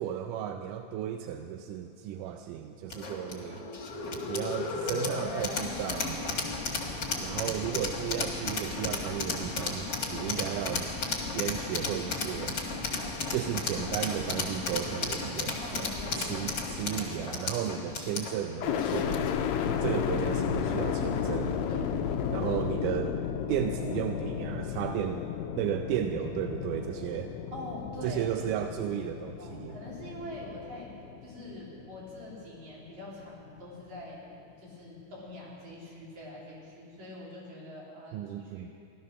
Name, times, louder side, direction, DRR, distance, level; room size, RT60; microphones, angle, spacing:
voice 1, 0.0-3.7 4.3-6.5 7.2-10.9 11.3-12.6 13.3-15.9 16.2-19.3 19.8-21.6 22.3-23.2 23.5-25.3 25.6-27.3 28.0-29.8 38.1-38.7, right 10 dB, 80° right, 6 dB, 2.0 m, -34 dB
sound 1, 2.9-19.4, left 3 dB, 40° left, 2.0 m, -34 dB
voice 2, 15.6-16.5 21.7-22.0 27.5-28.3 29.4-30.9 31.2-34.2 34.6-38.7, left 1 dB, 55° right, -5 dB, 4.3 m, -44 dB
sound 2, 18.6-32.6 33.1-33.9, left 8 dB, 90° left, 2.5 m, -33 dB
16.0 x 12.5 x 6.4 m, 2.5 s
omnidirectional pair, 4.0 m